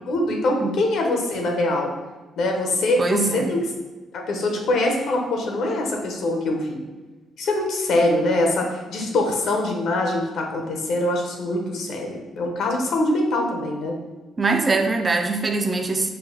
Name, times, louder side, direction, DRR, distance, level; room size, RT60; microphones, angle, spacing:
voice 1, 0.1-1.9 2.4-3.6 4.1-6.8 7.4-14.0, left 2 dB, 75° left, 2 dB, 0.9 m, -23 dB
voice 2, 3.0-3.5 14.4-16.1, right 3 dB, 30° right, 4 dB, 0.4 m, -22 dB
4.6 x 2.6 x 3.8 m, 1.2 s
cardioid pair, 90°, 0 cm